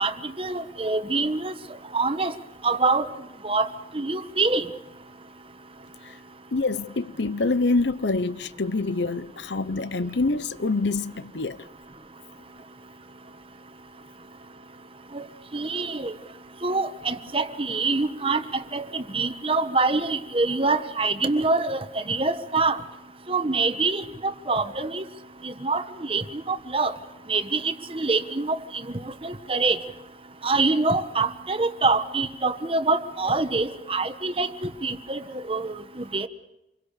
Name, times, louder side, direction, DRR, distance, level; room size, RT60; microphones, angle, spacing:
voice 1, 0.0-1.5 1.9-2.3 2.6-3.1 3.4-3.7 3.9-4.7 15.1-15.2 15.5-16.2 16.6-22.8 23.3-25.0 25.4-26.9 27.3-29.8 30.4-36.3, right 3 dB, 30° right, 1.3 m, -25 dB
voice 2, 6.5-11.6, left 3 dB, 85° left, 0.9 m, -26 dB
27.5 x 22.5 x 6.7 m
head